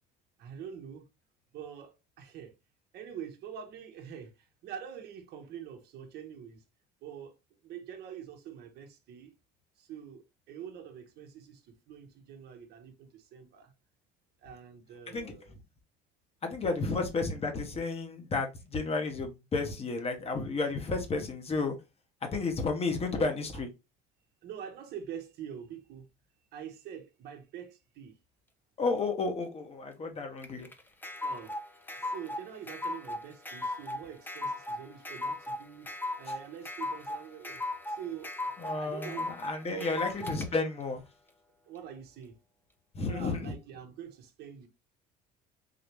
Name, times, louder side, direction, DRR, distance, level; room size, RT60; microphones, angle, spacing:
voice 1, 0.4-1.1 1.5-2.5 2.9-4.3 4.6-6.6 7.0-7.3 7.6-9.3 9.8-13.7 14.4-15.5 16.6-17.1 23.1-23.6 24.4-26.1 26.5-28.1 31.2-31.6 32.0-37.6 37.9-38.3 38.6-39.3 39.7-40.3 41.6-42.4 43.0-44.7, right 8 dB, 60° right, 1.0 m, -45 dB
voice 2, 16.4-21.8 22.3-23.7 28.8-30.7 38.6-41.0 42.9-43.5, left 3 dB, 35° left, 1.2 m, -32 dB
sound 1, 30.4-40.5, left 2 dB, 10° left, 0.6 m, -37 dB
3.9 x 2.8 x 3.2 m
supercardioid pair, 95°, 19 cm